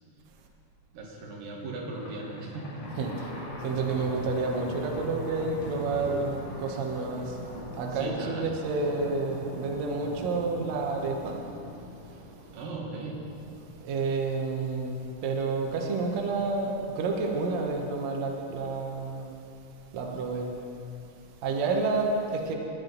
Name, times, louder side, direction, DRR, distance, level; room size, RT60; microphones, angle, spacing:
voice 1, 0.9-2.8 7.9-8.5 12.5-13.2, right 2 dB, 90° right, -2 dB, 3.3 m, -38 dB
Thunder, 1.9-13.6, left 1 dB, 50° left, 3.2 m, -41 dB
voice 2, 2.9-3.3 3.6-7.4 7.8-11.4 13.8-19.4 19.9-20.5 21.4-22.5, right 3 dB, 65° right, 0 dB, 2.1 m, -29 dB
19.0 x 9.3 x 3.9 m, 2.6 s
omnidirectional pair, 3.8 m